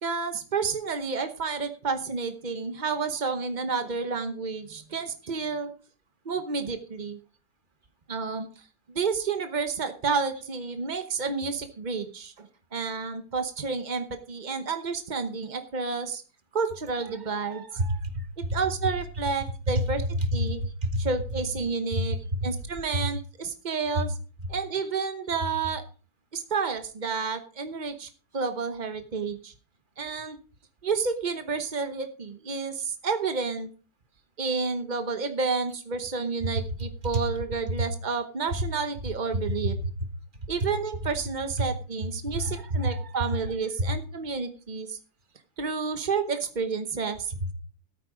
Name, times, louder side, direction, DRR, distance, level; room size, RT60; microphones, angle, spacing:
voice 1, 0.0-5.7 6.2-7.2 8.1-8.5 8.9-12.5 12.7-16.2 16.5-18.0 18.5-20.0 20.3-20.6 21.0-22.2 22.4-24.1 24.5-25.8 26.3-29.5 30.0-30.4 30.8-33.7 34.4-39.8 40.5-45.0 45.6-47.3, right 5 dB, 50° right, 8 dB, 0.5 m, -30 dB
voice 2, 17.8-18.6 19.8-19.9 20.4-21.1 21.9-22.5 22.9-23.0 24.0-24.1 36.4-36.5 37.1-37.2 37.7-37.9 39.3-39.4 39.8-39.9 40.6-40.7 41.6-41.7 42.3-42.9 43.8-44.0 47.4-47.5, equal, 25° right, 8 dB, 1.3 m, -28 dB
13.0 x 9.0 x 5.0 m, 0.37 s
omnidirectional pair, 2.4 m